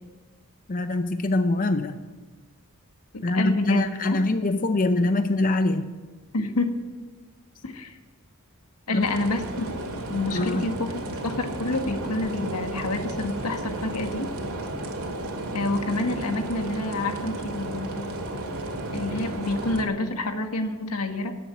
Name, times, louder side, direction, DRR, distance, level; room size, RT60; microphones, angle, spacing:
voice 1, 0.7-2.0 3.2-5.9 8.9-9.1 10.3-10.6, left 2 dB, 40° left, 8 dB, 0.6 m, -24 dB
voice 2, 3.1-4.2 6.3-6.8 7.6-8.0 8.9-9.8 10.1-14.3 15.5-18.1 18.9-21.3, left 2 dB, 85° left, 6 dB, 1.6 m, -28 dB
sound 1, 9.0-19.8, right 2 dB, 75° right, 2.4 m, -33 dB
18.5 x 7.9 x 8.4 m, 1.3 s
head